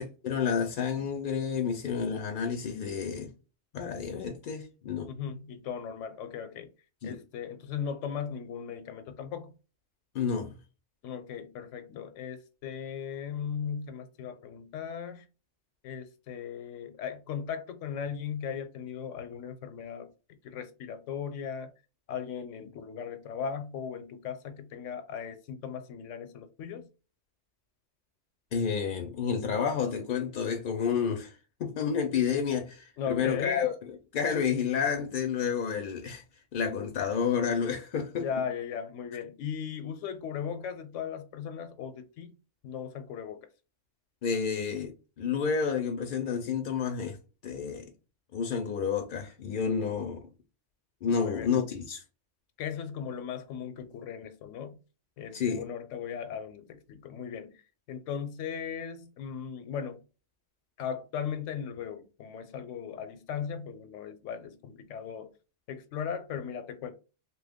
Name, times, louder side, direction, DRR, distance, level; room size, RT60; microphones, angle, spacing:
voice 1, 0.0-3.3 3.7-5.1 7.0-7.2 10.1-10.5 28.5-31.3 31.6-33.7 34.1-36.2 36.5-38.3 44.2-47.2 47.4-47.9 48.3-50.3 51.0-52.0 55.3-55.6, left 6 dB, 60° left, 0.6 m, -30 dB
voice 2, 5.1-6.7 7.0-9.5 11.0-15.2 15.8-20.1 20.4-21.7 22.1-26.9 33.0-33.7 38.1-42.3 42.6-43.5 51.0-51.5 52.6-54.8 55.2-57.6 57.9-60.0 60.8-65.3 65.7-66.9, left 7 dB, 85° left, 0.9 m, -37 dB
3.0 x 2.2 x 3.4 m
omnidirectional pair, 1.2 m